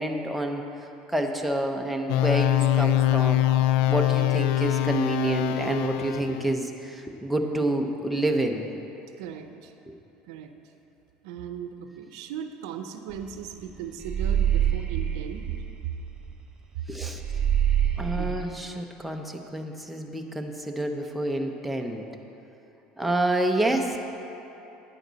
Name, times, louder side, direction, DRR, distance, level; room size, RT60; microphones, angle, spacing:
voice 1, 0.0-3.5 3.9-8.7 9.9-10.0 16.9-17.2 18.0-22.1 23.0-24.0, right 1 dB, ahead, 2 dB, 0.8 m, -28 dB
sound 1, 2.1-6.5, left 14 dB, 75° left, 0.3 m, -23 dB
voice 2, 9.2-9.7 10.3-10.5 11.2-15.5 15.9-16.0 18.2-18.4, right 8 dB, 90° right, 7 dB, 0.7 m, -37 dB
sound 2, 13.1-13.3 13.6-16.4 16.7-16.8 17.2-18.4, right 9 dB, 25° right, 1.4 m, -26 dB
11.0 x 9.4 x 4.1 m, 3.0 s
cardioid pair, 130°, 3 cm